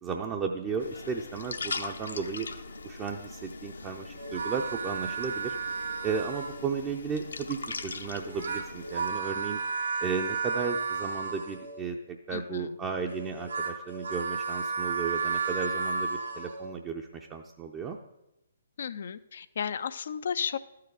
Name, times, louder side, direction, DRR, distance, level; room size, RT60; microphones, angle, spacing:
voice 1, 0.0-2.5 2.8-5.5 6.0-9.6 10.0-18.0, right 5 dB, 20° right, 2 dB, 0.5 m, -34 dB
sound 1, 0.8-9.1, left 3 dB, 75° left, 0.8 m, -41 dB
sound 2, 4.2-6.8 8.2-11.8 13.1-16.7, right 4 dB, 70° right, 2.2 m, -33 dB
voice 2, 12.3-12.8 18.8-20.6, left 7 dB, 60° left, 14 dB, 0.4 m, -34 dB
13.5 x 4.8 x 4.8 m, 0.94 s
figure-of-eight pair, 135°, 0 cm